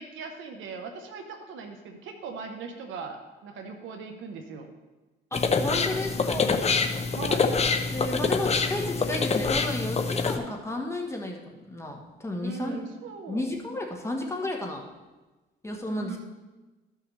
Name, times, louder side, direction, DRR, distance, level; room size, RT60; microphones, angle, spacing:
voice 1, 0.0-4.7 7.1-7.5 12.4-13.4 15.9-16.2, right 4 dB, 80° right, 4 dB, 1.0 m, -39 dB
sound 1, 5.3-10.4, left 4 dB, 35° left, 0.7 m, -26 dB
voice 2, 5.3-6.6 7.9-12.8 13.3-14.8 15.6-16.2, left 1 dB, 15° left, 0 dB, 1.2 m, -33 dB
14.0 x 5.7 x 3.2 m, 1.2 s
cardioid pair, 90°, 20 cm